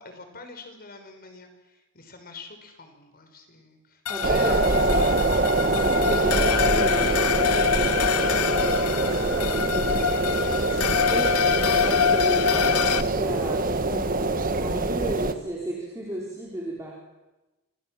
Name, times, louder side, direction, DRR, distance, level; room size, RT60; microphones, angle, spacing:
voice 1, 0.0-5.1 8.8-9.2 10.0-10.8 12.4-13.3, left 3 dB, 45° left, 6 dB, 5.3 m, -46 dB
sound 1, 4.1-13.0, left 7 dB, 85° left, 1.0 m, -25 dB
voice 2, 4.1-5.2 5.5-8.9 9.2-11.5 11.7-16.9, right 1 dB, 15° right, -3 dB, 4.5 m, -33 dB
sound 2, 4.2-15.3, right 2 dB, 40° right, 1.6 m, -24 dB
29.0 x 26.0 x 7.7 m, 1.1 s
head